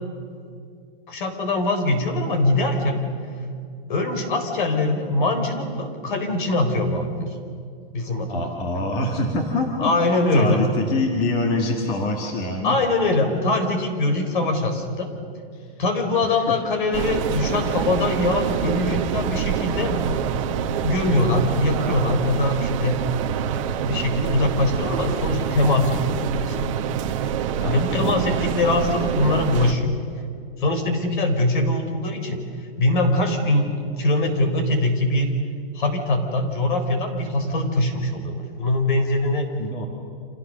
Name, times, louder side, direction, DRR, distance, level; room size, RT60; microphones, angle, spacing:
voice 1, 1.1-3.0 3.9-7.3 7.9-8.3 8.7-8.8 9.8-10.6 12.6-15.1 15.8-20.5 20.8-23.0 23.6-26.7 27.2-27.4 27.6-29.9 30.6-35.4 35.7-39.5, left 2 dB, 55° left, 6 dB, 4.5 m, -22 dB
voice 2, 8.3-12.8 15.5-15.8 16.2-16.6 27.6-28.2 39.6-39.9, left 2 dB, 20° left, 2 dB, 1.7 m, -26 dB
sound 1, 16.9-29.7, right 8 dB, 35° right, 1.4 m, -26 dB
30.0 x 26.5 x 6.7 m, 2.3 s
supercardioid pair, 180°, 30 cm